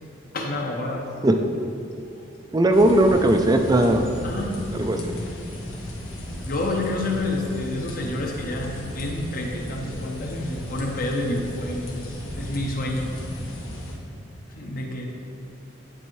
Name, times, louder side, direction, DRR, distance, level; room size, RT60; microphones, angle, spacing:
voice 1, 0.3-1.1 4.2-5.3 6.4-13.1 14.6-15.1, left 2 dB, 45° left, 0 dB, 0.8 m, -29 dB
voice 2, 2.5-4.1 4.8-5.0, right 1 dB, 20° right, 5 dB, 0.4 m, -18 dB
sound 1, 2.7-13.9, equal, 90° left, 1.3 m, -35 dB
9.9 x 4.4 x 3.1 m, 2.5 s
head